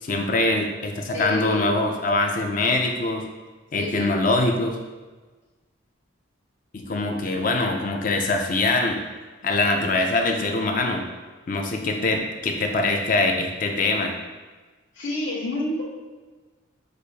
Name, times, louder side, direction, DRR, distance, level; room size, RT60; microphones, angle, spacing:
voice 1, 0.0-3.2 3.7-4.8 6.7-9.0 9.4-11.0 11.5-14.1, left 2 dB, 40° left, 3 dB, 0.4 m, -23 dB
voice 2, 1.1-1.6 3.8-4.3 14.9-15.8, left 1 dB, 75° left, -12 dB, 1.2 m, -29 dB
6.4 x 2.5 x 3.3 m, 1.3 s
head